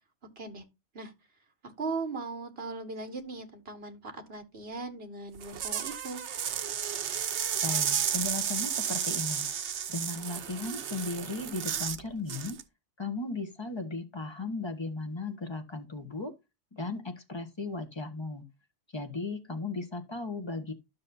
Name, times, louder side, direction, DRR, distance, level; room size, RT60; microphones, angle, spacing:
voice 1, 1.6-6.2, right 3 dB, 55° right, 1.9 m, -38 dB
sound 1, 5.4-12.0 12.3-12.6, right 8 dB, 75° right, 1.1 m, -32 dB
voice 2, 7.6-9.5 9.9-12.6 13.0-16.3 16.7-18.4 18.9-20.7, left 3 dB, 25° left, 1.4 m, -36 dB
12.5 x 6.3 x 2.7 m
omnidirectional pair, 1.2 m